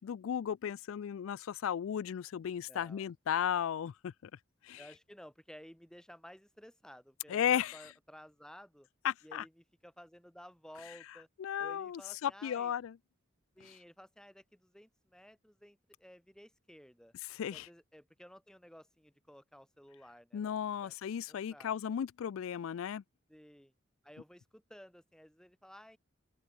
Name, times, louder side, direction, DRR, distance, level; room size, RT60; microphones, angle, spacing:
voice 1, 0.0-4.1 4.6-4.9 7.3-7.9 9.0-9.4 11.4-13.0 13.6-13.8 17.2-17.7 20.3-23.0, left 9 dB, 85° left, 0.3 m, -35 dB
voice 2, 2.6-3.1 4.8-8.9 9.2-11.3 11.6-12.7 13.6-17.1 17.5-20.5 20.8-20.9 21.3-21.7 23.3-23.7 24.0-26.0, equal, 5° left, 5.2 m, -55 dB
open air
head